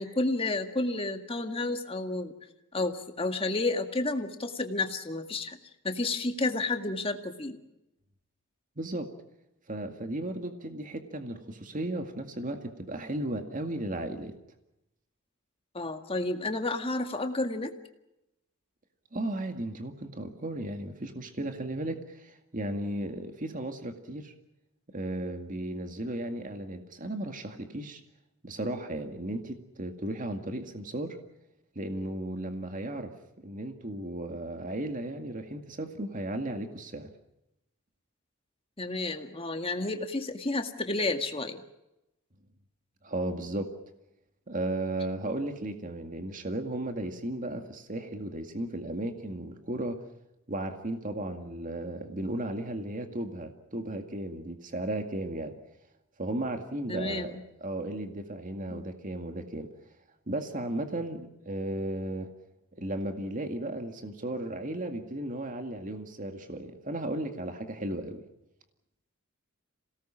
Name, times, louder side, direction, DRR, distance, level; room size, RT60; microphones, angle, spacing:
voice 1, 0.0-2.3 2.7-5.6 5.8-7.6 15.7-17.7 38.8-41.6 56.9-57.4 58.7-58.9, left 2 dB, 25° left, 6 dB, 2.0 m, -31 dB
voice 2, 8.8-9.1 9.7-14.3 19.1-24.3 24.9-28.0 28.4-31.2 31.8-33.1 33.4-37.1 43.0-43.7 44.5-50.0 50.5-55.5 56.2-59.7 60.3-62.3 62.8-68.2, right 1 dB, 40° right, 6 dB, 2.0 m, -35 dB
27.0 x 18.5 x 7.4 m, 0.91 s
head